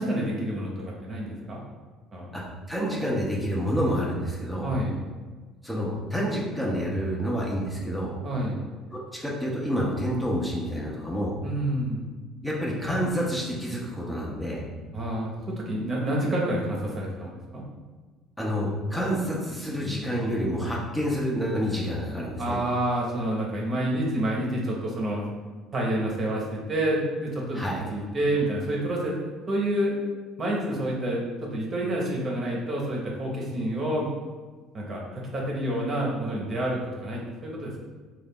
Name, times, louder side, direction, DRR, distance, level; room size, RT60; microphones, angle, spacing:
voice 1, 0.0-1.6 2.1-2.3 4.6-5.0 8.2-8.6 11.4-12.1 14.9-17.6 22.4-25.2 25.7-27.6 27.9-29.2 29.5-30.0 30.4-34.1 34.7-37.8, right 1 dB, 40° right, -2 dB, 1.0 m, -28 dB
voice 2, 2.7-4.7 5.6-8.1 8.9-11.3 12.4-14.6 18.4-22.6 27.5-27.8, equal, 5° left, -4 dB, 1.0 m, -28 dB
3.7 x 2.5 x 3.6 m, 1.4 s
hypercardioid pair, 60°, 0 cm